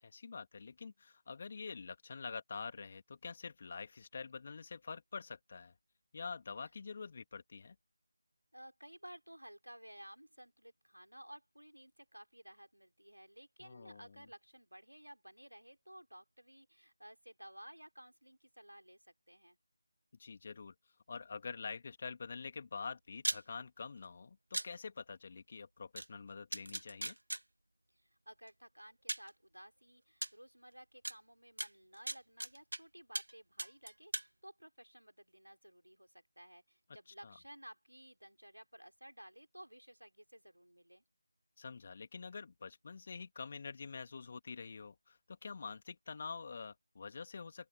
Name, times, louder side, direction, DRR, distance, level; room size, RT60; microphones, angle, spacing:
voice 1, 0.0-5.7 6.1-7.8 13.6-14.2 20.2-20.7 21.1-27.2 37.2-37.4 41.6-47.7, left 5 dB, 30° left, 2.4 m, -46 dB
voice 2, 8.5-19.6 28.3-41.0, right 1 dB, 85° right, 3.8 m, -56 dB
sound 1, 23.2-23.4 24.5-24.7 26.0-26.1 26.5-27.4 28.5-28.6 29.1-29.3 30.2-30.3 31.0-31.1 31.6-32.8 33.1-33.3 33.6-34.3, right 1 dB, 70° right, 0.4 m, -38 dB
open air
figure-of-eight pair, 165°, 0 cm